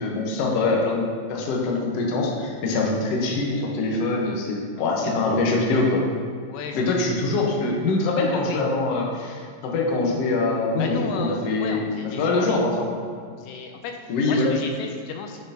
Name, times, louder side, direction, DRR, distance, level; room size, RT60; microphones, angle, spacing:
voice 1, 0.0-6.0 6.7-11.9 12.2-12.9 14.1-14.5, left 3 dB, 65° left, -2 dB, 1.6 m, -23 dB
voice 2, 4.8-5.4 6.5-7.0 8.3-8.6 10.8-12.9 13.3-15.4, left 6 dB, 85° left, 4 dB, 2.2 m, -35 dB
8.0 x 6.7 x 2.8 m, 2.1 s
omnidirectional pair, 4.0 m